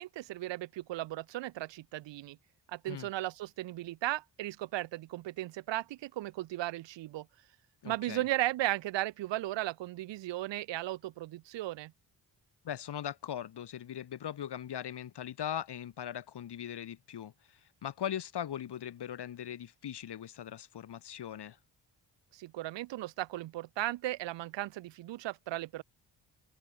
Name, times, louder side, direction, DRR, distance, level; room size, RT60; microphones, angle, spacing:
voice 1, 0.0-2.4 2.7-7.3 7.8-11.9 22.3-25.8, right 16 dB, 75° right, 0.6 m, -36 dB
voice 2, 7.8-8.2 12.6-21.6, left 10 dB, 65° left, 1.6 m, -40 dB
cardioid pair, 80°, 44 cm